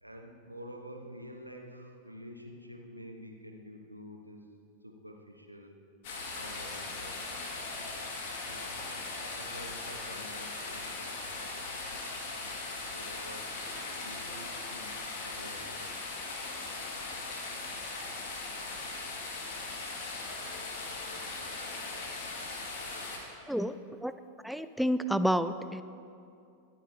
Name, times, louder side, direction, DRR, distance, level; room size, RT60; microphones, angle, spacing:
voice 1, 0.0-4.4 4.8-5.7 6.3-7.5 8.5-11.2 12.8-13.5 13.9-15.9, equal, 90° right, 1 dB, 1.2 m, -49 dB
sound 1, 6.0-23.2, left 3 dB, 50° left, 2.0 m, -39 dB
voice 2, 24.4-25.8, equal, ahead, 12 dB, 0.4 m, -29 dB
23.5 x 9.1 x 2.8 m, 2.5 s
figure-of-eight pair, 90°, 0 cm